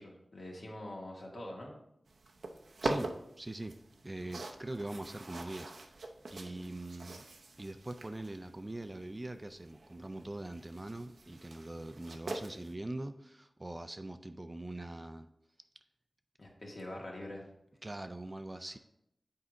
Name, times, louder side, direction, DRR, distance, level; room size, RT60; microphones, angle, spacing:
voice 1, 0.0-1.8 16.4-17.4, left 1 dB, 55° left, -1 dB, 1.7 m, -44 dB
sound 1, 2.1-12.7, right 2 dB, 90° right, 0.6 m, -44 dB
voice 2, 2.8-7.3 7.6-15.3 17.8-18.8, right 1 dB, 25° right, 8 dB, 0.4 m, -43 dB
8.0 x 4.8 x 3.8 m, 0.79 s
wide cardioid pair, 90°, 0 cm